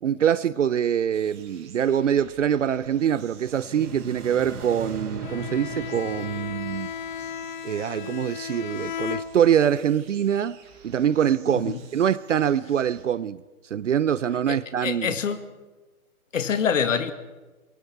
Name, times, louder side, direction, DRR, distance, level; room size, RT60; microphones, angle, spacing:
voice 1, 0.0-6.9 7.6-10.6 10.8-13.4 13.7-15.1, right 9 dB, 55° right, 0.7 m, -24 dB
sound 1, 1.1-13.0, right 5 dB, 20° right, 5.5 m, -53 dB
sound 2, 3.2-8.3, right 3 dB, 85° right, 2.1 m, -40 dB
Bowed string instrument, 5.2-9.8, left 8 dB, 35° left, 1.0 m, -35 dB
voice 2, 14.5-15.5 16.3-17.1, left 7 dB, 60° left, 1.8 m, -26 dB
27.0 x 22.5 x 4.7 m
hypercardioid pair, 145°, 44 cm